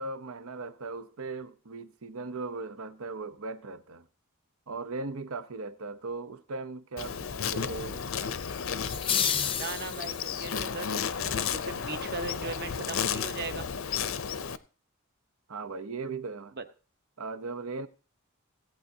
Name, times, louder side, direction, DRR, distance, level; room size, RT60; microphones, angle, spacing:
voice 1, 0.0-4.1 4.7-8.1 15.5-16.5 17.2-17.9, right 3 dB, 80° right, 0.8 m, -38 dB
Insect, 7.0-14.6, left 7 dB, 70° left, 0.6 m, -33 dB
sound 1, 8.8-10.4, left 8 dB, 25° left, 0.5 m, -30 dB
voice 2, 9.5-10.9 11.2-13.7 16.6-16.7, right 3 dB, 45° right, 0.9 m, -38 dB
17.0 x 8.9 x 2.8 m
head